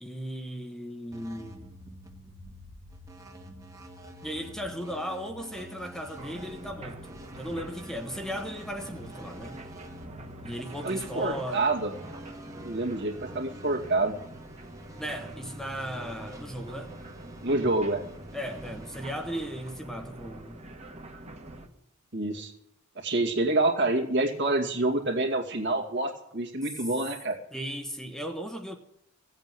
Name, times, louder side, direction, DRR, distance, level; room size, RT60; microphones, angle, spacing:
voice 1, 0.0-1.7 4.2-9.6 10.4-11.7 15.0-17.0 18.3-20.6 27.5-28.8, equal, ahead, 1.1 m, -36 dB
sound 1, 1.1-20.7, right 1 dB, 15° right, 1.5 m, -48 dB
sound 2, 6.2-21.7, right 1 dB, 30° right, 1.5 m, -45 dB
voice 2, 10.8-11.9 12.6-14.2 17.4-18.0 22.1-22.5 23.0-27.4, right 2 dB, 55° right, 2.3 m, -27 dB
16.5 x 8.1 x 9.3 m
head